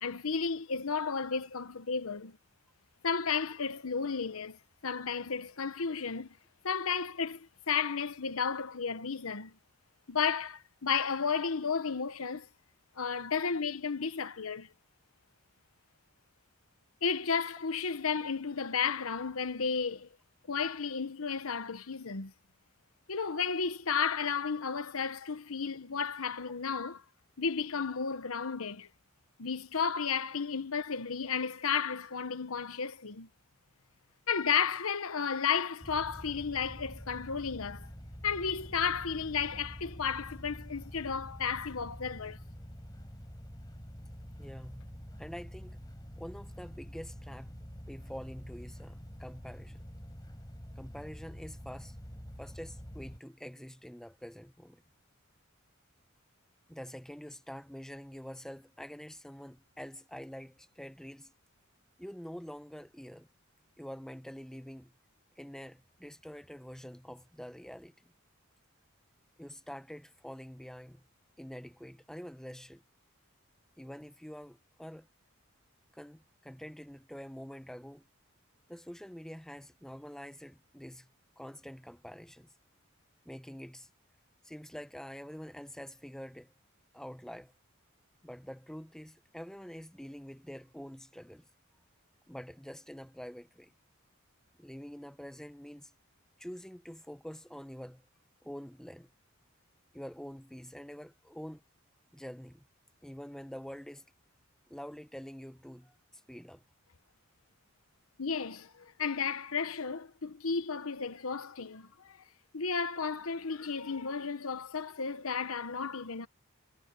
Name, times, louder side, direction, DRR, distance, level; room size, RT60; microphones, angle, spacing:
voice 1, 0.0-2.4 3.0-6.4 6.6-9.5 10.1-12.5 13.0-14.7 17.0-20.1 20.5-22.3 23.1-27.0 27.4-28.9 29.4-33.3 34.3-37.9 38.2-42.4 108.2-112.2 112.5-116.3, left 6 dB, 85° left, 1.1 m, -33 dB
sound 1, 35.8-53.2, equal, 20° left, 4.6 m, -47 dB
voice 2, 44.4-44.9 45.2-45.8 46.2-49.8 50.8-52.0 52.4-54.8 56.7-61.3 62.0-63.3 63.8-64.9 65.4-68.1 69.4-71.0 71.4-72.8 73.8-75.1 75.9-78.1 78.7-81.1 81.4-82.5 83.2-83.9 84.4-86.5 86.9-87.5 88.2-91.5 92.3-93.7 94.6-95.9 96.4-98.0 98.4-99.1 99.9-101.6 102.1-102.7 103.0-104.1 104.7-106.6, equal, 5° left, 0.8 m, -46 dB
head